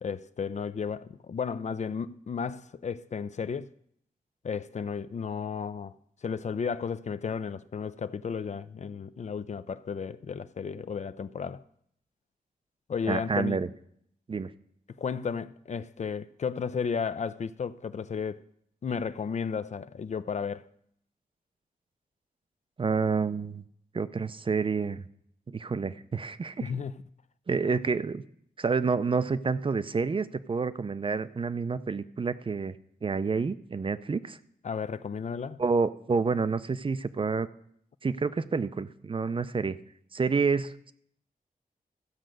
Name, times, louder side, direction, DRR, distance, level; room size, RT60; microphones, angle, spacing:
voice 1, 0.0-3.7 4.4-5.9 6.2-11.6 12.9-13.6 15.0-18.4 18.8-20.7 26.6-27.0 34.6-35.6, left 6 dB, 50° left, 0.4 m, -33 dB
voice 2, 13.1-13.7 14.3-14.5 22.8-23.6 23.9-25.0 25.5-26.7 27.5-28.2 28.6-32.8 33.0-34.4 35.6-37.5 38.0-39.8 40.1-40.9, right 4 dB, 35° right, 0.5 m, -28 dB
14.0 x 5.1 x 7.7 m
wide cardioid pair, 100°, 15 cm